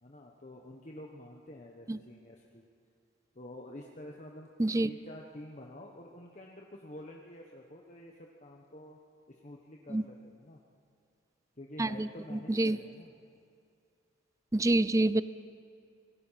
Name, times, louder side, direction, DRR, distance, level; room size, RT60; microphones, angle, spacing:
voice 1, 0.0-2.6 3.3-4.5 4.8-9.0 9.3-10.6 11.6-13.1, left 1 dB, 35° left, 0 dB, 1.2 m, -48 dB
voice 2, 4.6-4.9 9.9-10.0 11.8-12.8 14.5-15.2, right 2 dB, 15° right, 16 dB, 0.4 m, -27 dB
26.5 x 19.5 x 5.8 m, 2.4 s
head